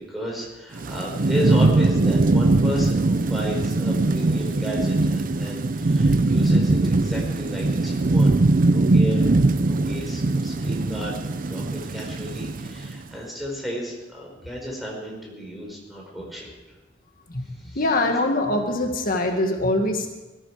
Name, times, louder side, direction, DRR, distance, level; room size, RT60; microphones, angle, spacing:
voice 1, 0.0-8.4 8.7-9.3 9.6-11.2 11.5-16.5 17.6-17.9, equal, ahead, -2 dB, 4.8 m, -33 dB
Thunderstorm / Rain, 0.7-13.0, right 2 dB, 50° right, 0.6 m, -21 dB
voice 2, 17.8-20.1, left 2 dB, 50° left, 3 dB, 1.9 m, -23 dB
19.5 x 14.5 x 4.9 m, 1.1 s
head